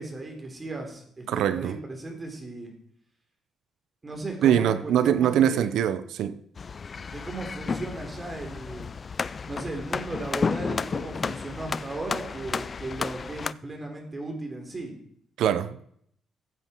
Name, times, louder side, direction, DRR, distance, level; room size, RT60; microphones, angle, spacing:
voice 1, 0.0-2.7 4.0-5.7 7.1-8.9 9.5-14.9, right 2 dB, 30° right, 3.7 m, -36 dB
voice 2, 1.3-1.8 4.4-6.4 15.4-15.8, right 10 dB, 80° right, 0.7 m, -23 dB
sound 1, 6.6-13.5, left 5 dB, 40° left, 0.4 m, -32 dB
15.5 x 8.2 x 4.5 m
cardioid pair, 90°, 0 cm